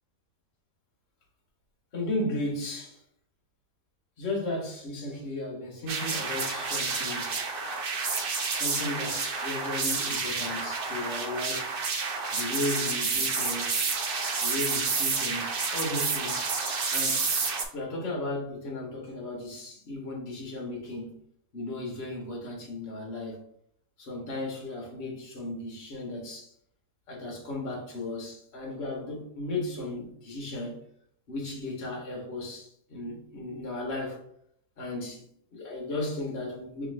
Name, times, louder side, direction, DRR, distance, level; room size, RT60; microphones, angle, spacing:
voice 1, 1.9-3.0 4.2-7.4 8.5-11.7 12.3-13.9 14.4-16.5 16.9-17.3 17.7-21.2 21.5-23.4 24.0-26.5 27.1-30.8 31.3-34.2 34.8-35.2 35.5-36.9, left 2 dB, 45° left, 1.4 m, -35 dB
sound 1, 5.9-17.6, right 4 dB, 70° right, 0.5 m, -29 dB
5.6 x 2.9 x 2.5 m
omnidirectional pair, 1.7 m